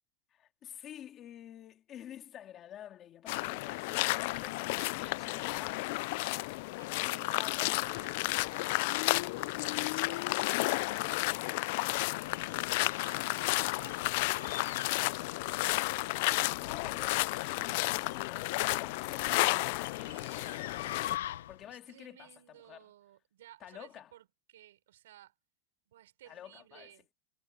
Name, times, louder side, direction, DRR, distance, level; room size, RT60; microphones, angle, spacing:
voice 1, 0.3-6.0 7.0-7.8 16.6-22.8 23.6-24.1 26.2-26.9, left 11 dB, 25° left, 2.7 m, -50 dB
sound 1, 3.3-21.2, left 23 dB, 45° left, 0.3 m, -32 dB
voice 2, 6.8-12.4 12.9-14.0 14.3-16.5 19.9-20.8 21.6-25.3 25.9-27.1, right 13 dB, 90° right, 6.1 m, -57 dB
sound 2, 11.9-21.7, left 12 dB, 85° left, 0.9 m, -45 dB
supercardioid pair, 175°, 0 cm